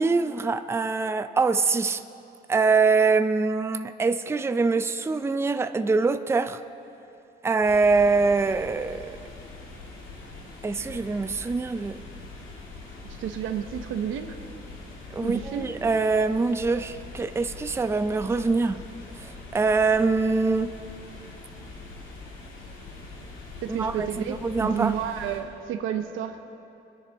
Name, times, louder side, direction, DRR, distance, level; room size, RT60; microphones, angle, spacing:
voice 1, 0.0-2.0 2.5-6.6 7.4-9.1 10.6-12.0 15.1-18.8 19.2-20.7 23.7-25.0, right 4 dB, 15° right, 11 dB, 0.4 m, -24 dB
sound 1, 7.6-25.4, left 3 dB, 85° left, 2.3 m, -43 dB
voice 2, 13.2-14.4 15.2-15.7 23.6-26.4, right 9 dB, 90° right, 7 dB, 0.9 m, -31 dB
21.0 x 9.9 x 3.5 m, 2.8 s
cardioid pair, 90°, 20 cm